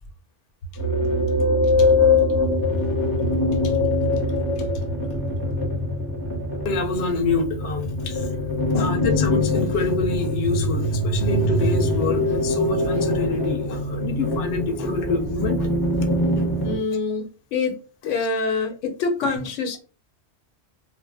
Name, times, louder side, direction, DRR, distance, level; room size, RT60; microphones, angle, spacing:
sound 1, 0.8-16.8, left 2 dB, 25° left, 0.5 m, -23 dB
voice 1, 6.6-8.3 8.7-15.7 16.4-16.6 18.2-18.3 19.2-19.4, left 4 dB, 65° left, 5 dB, 0.8 m, -27 dB
voice 2, 16.6-17.8 18.0-19.8, left 4 dB, 90° left, 5 dB, 1.0 m, -25 dB
2.5 x 2.0 x 3.3 m, 0.36 s
omnidirectional pair, 1.2 m